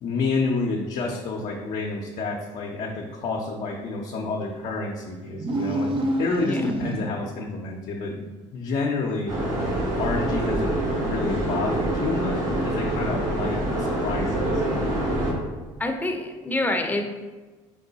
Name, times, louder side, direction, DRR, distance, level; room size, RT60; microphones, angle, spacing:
voice 1, 0.0-5.9 6.2-8.2 8.5-9.3 9.9-14.6, left 3 dB, 55° left, -1 dB, 0.6 m, -29 dB
sound 1, 5.3-7.4, right 1 dB, 35° right, 0.6 m, -27 dB
sound 2, 9.3-15.3, right 1 dB, 70° right, 1.5 m, -26 dB
voice 2, 15.8-17.0, left 2 dB, 10° left, 3 dB, 0.6 m, -26 dB
4.7 x 2.1 x 3.9 m, 1.3 s
supercardioid pair, 75°, 15 cm